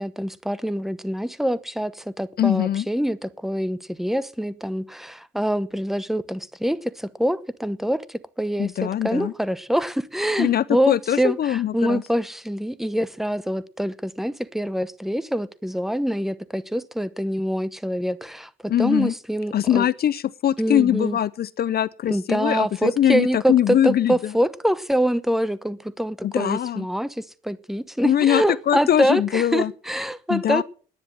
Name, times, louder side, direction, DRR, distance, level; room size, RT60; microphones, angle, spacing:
voice 1, 0.0-19.9 20.6-21.2 22.1-30.6, equal, ahead, 0.9 m, -25 dB
voice 2, 2.4-2.9 8.6-9.3 10.4-12.0 18.7-19.1 19.5-24.3 26.2-26.9 28.0-29.7 30.3-30.6, left 11 dB, 50° left, 0.5 m, -22 dB
10.0 x 10.0 x 7.3 m
cardioid pair, 90°, 20 cm